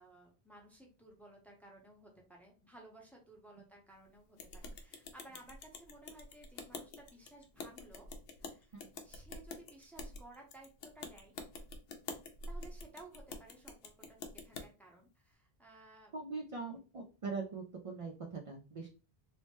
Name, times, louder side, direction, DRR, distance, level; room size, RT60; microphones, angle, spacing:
voice 1, 0.0-8.1 8.4-10.7 10.9-11.3 12.5-14.2 14.4-16.1, right 2 dB, ahead, 0 dB, 0.6 m, -57 dB
sound 1, 4.4-14.7, left 3 dB, 70° left, 0.8 m, -47 dB
voice 2, 16.1-18.9, right 4 dB, 55° right, 2 dB, 0.3 m, -42 dB
3.1 x 2.1 x 2.9 m, 0.34 s
omnidirectional pair, 1.0 m